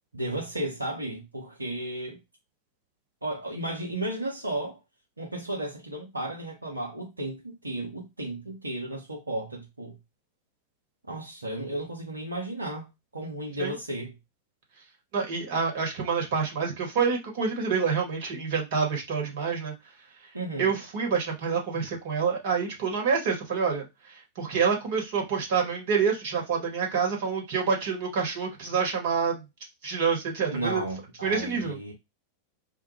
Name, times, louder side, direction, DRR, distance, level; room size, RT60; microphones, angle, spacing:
voice 1, 0.1-2.2 3.2-4.8 5.2-9.9 11.1-12.9 13.1-14.1 20.3-20.8 30.5-31.9, right 1 dB, 80° right, 0.7 m, -34 dB
voice 2, 15.1-19.7 20.6-29.4 29.8-30.8 31.2-31.9, right 5 dB, 55° right, 1.1 m, -27 dB
2.2 x 2.1 x 3.0 m
figure-of-eight pair, 90°, 0 cm